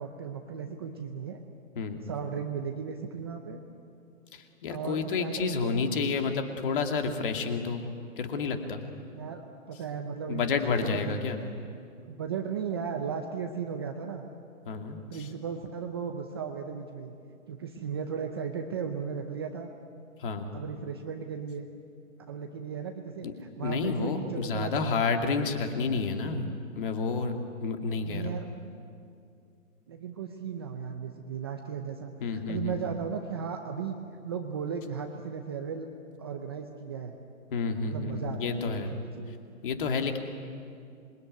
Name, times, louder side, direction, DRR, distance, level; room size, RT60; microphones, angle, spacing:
voice 1, 0.0-1.4 2.0-3.6 4.7-5.7 9.1-9.4 9.7-11.3 12.0-14.2 15.1-17.1 17.5-19.7 20.5-21.7 22.3-24.9 28.0-28.5 29.9-34.0 34.2-35.9 36.2-37.2 37.8-38.6 38.9-39.4, right 6 dB, 20° right, 4 dB, 0.7 m, -36 dB
voice 2, 4.3-7.8 8.2-8.8 10.3-11.4 14.7-15.3 20.2-20.5 23.2-23.3 23.6-26.5 26.7-27.4 27.6-28.4 32.2-32.8 37.5-38.9 39.6-40.2, left 4 dB, 40° left, 5 dB, 2.4 m, -30 dB
27.0 x 22.0 x 9.4 m, 2.4 s
hypercardioid pair, 165°, 41 cm